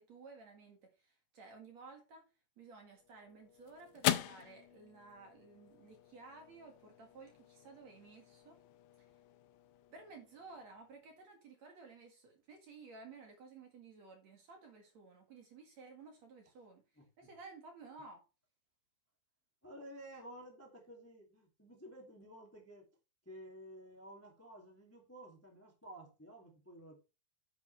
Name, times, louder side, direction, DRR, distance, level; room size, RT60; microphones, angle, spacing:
voice 1, 0.0-2.3 2.6-8.6 9.9-16.8 17.2-18.2, right 4 dB, 50° right, 2.4 m, -55 dB
sound 1, 2.8-11.3, left 14 dB, 80° left, 2.7 m, -43 dB
voice 2, 16.9-17.3 19.6-22.9 23.2-27.0, right 1 dB, 10° left, 0.8 m, -53 dB
9.8 x 8.2 x 3.3 m
omnidirectional pair, 5.2 m